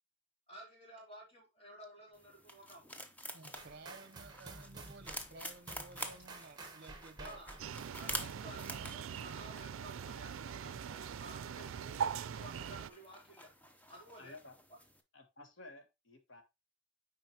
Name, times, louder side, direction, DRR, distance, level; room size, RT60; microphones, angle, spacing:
voice 1, 0.5-2.9 7.2-7.6 7.9-13.5 13.9-14.4, right 1 dB, 30° left, 3.2 m, -54 dB
sound 1, 2.1-15.0, equal, 10° left, 0.8 m, -49 dB
voice 2, 3.3-7.4 8.2-8.8, right 3 dB, 55° right, 0.8 m, -54 dB
sound 2, 3.6-8.7, right 3 dB, 20° right, 1.2 m, -52 dB
sound 3, 7.6-12.9, right 7 dB, 80° right, 0.4 m, -41 dB
voice 3, 14.2-14.5 15.1-16.4, left 2 dB, 70° left, 1.5 m, -54 dB
8.9 x 4.8 x 2.9 m
head